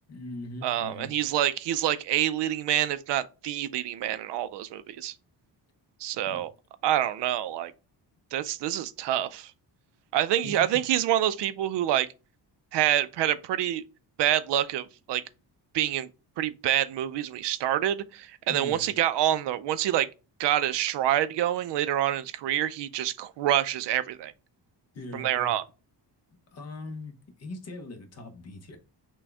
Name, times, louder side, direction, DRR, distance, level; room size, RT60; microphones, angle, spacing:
voice 1, 0.1-1.1 6.3-6.4 10.4-10.8 18.5-18.8 24.9-25.5 26.5-28.8, left 2 dB, 40° left, 0.8 m, -41 dB
voice 2, 0.6-5.1 6.0-6.5 6.8-7.7 8.3-9.5 10.1-12.1 12.7-13.8 14.2-15.2 15.7-16.1 16.4-20.1 20.4-24.3 25.1-25.6, right 12 dB, 80° right, 0.5 m, -27 dB
6.1 x 2.3 x 3.3 m
wide cardioid pair, 175°, 41 cm